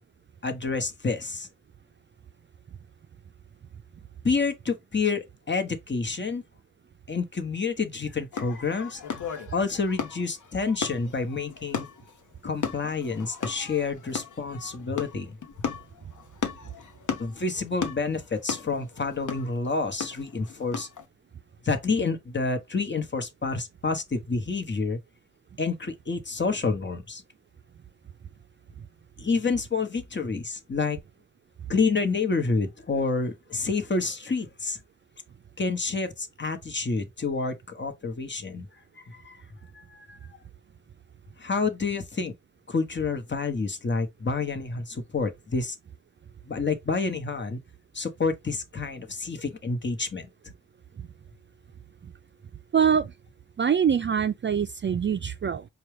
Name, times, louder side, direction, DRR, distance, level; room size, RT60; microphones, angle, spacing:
voice 1, 0.4-1.5 4.2-6.4 7.1-11.9 12.4-15.4 17.2-20.9 21.6-25.0 25.6-27.2 29.2-31.0 31.7-34.8 35.6-38.7 39.0-39.4 39.7-40.2 41.4-42.3 42.7-45.8 46.5-47.6 47.9-50.3, left 4 dB, 35° left, 1.0 m, -28 dB
sound 1, 8.3-21.0, left 6 dB, 70° left, 0.8 m, -36 dB
voice 2, 52.7-53.1 53.6-55.7, right 7 dB, 35° right, 0.4 m, -24 dB
4.6 x 2.3 x 3.2 m
cardioid pair, 50°, 32 cm